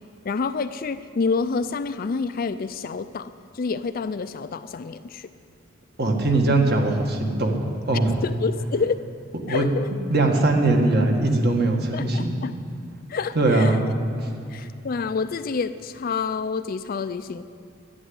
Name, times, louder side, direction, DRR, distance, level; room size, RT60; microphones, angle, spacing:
voice 1, 0.2-5.3 8.2-9.1 9.5-9.9 11.9-12.5 13.1-13.8 14.2-17.4, left 4 dB, 50° left, 11 dB, 0.4 m, -28 dB
voice 2, 6.0-8.1 9.5-9.7 10.1-12.3 13.4-13.8, right 2 dB, 55° right, 2 dB, 1.8 m, -21 dB
11.5 x 11.0 x 9.4 m, 2.4 s
head